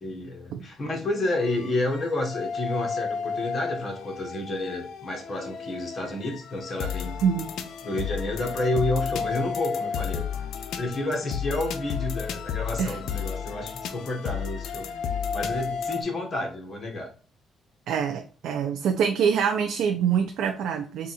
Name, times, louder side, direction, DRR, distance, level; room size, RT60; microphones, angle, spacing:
voice 1, 0.0-7.2 7.8-10.3 10.8-14.9 15.3-17.1, left 2 dB, 40° left, 2 dB, 1.3 m, -30 dB
sound 1, 1.4-16.0, left 6 dB, 80° left, 0.4 m, -32 dB
voice 2, 17.9-21.1, right 7 dB, 80° right, 4 dB, 0.4 m, -25 dB
3.7 x 2.4 x 4.1 m, 0.38 s
cardioid pair, 90°, 0 cm